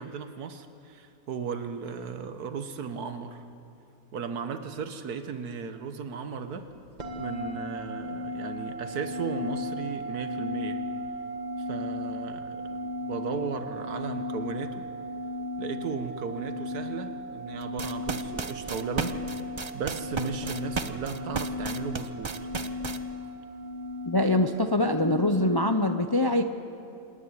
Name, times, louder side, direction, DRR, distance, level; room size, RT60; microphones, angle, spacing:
voice 1, 0.0-3.4 4.1-6.7 7.2-10.8 11.7-14.9 15.6-19.1 19.7-22.3, right 5 dB, 90° right, 8 dB, 1.7 m, -36 dB
sound 1, 7.0-25.7, left 1 dB, 30° right, 1.7 m, -36 dB
sound 2, 17.6-23.0, right 4 dB, 45° right, 0.3 m, -33 dB
voice 2, 24.1-26.4, left 1 dB, 40° left, 7 dB, 0.3 m, -24 dB
26.5 x 10.0 x 9.8 m, 2.6 s
omnidirectional pair, 1.6 m